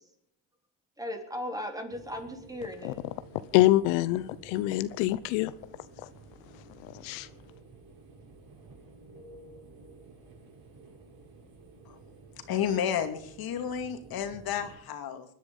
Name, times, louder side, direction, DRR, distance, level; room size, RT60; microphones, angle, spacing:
voice 1, 1.0-3.0, left 1 dB, 10° right, 4 dB, 3.4 m, -37 dB
sound 1, 1.9-14.8, right 3 dB, 55° right, 6.9 m, -52 dB
voice 2, 3.5-5.5 6.8-7.3, left 16 dB, 85° left, 15 dB, 0.9 m, -25 dB
voice 3, 12.5-15.3, left 8 dB, 55° left, 7 dB, 2.5 m, -31 dB
24.0 x 10.5 x 5.5 m, 0.69 s
cardioid pair, 120°, 44 cm